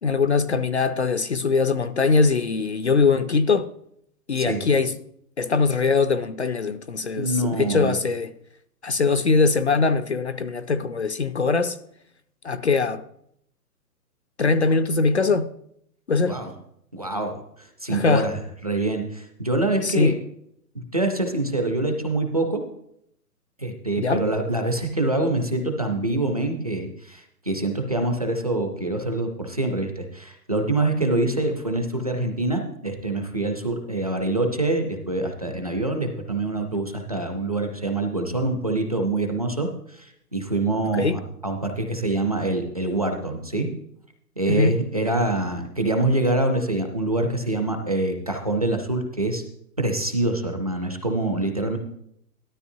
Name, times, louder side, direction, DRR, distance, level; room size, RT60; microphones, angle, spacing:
voice 1, 0.0-3.7 4.3-5.0 5.4-8.3 8.8-11.8 12.4-13.0 14.4-15.5 16.1-16.4 17.9-18.3 19.8-20.1 24.0-24.2 40.9-41.2 44.5-44.7, left 4 dB, 50° left, 0.4 m, -22 dB
voice 2, 7.2-8.0 14.6-14.8 16.3-16.5 16.9-20.1 20.7-22.6 23.6-43.7 44.4-49.4 49.8-51.8, right 2 dB, 25° right, 0.5 m, -25 dB
13.5 x 12.5 x 2.7 m
hypercardioid pair, 175°, 47 cm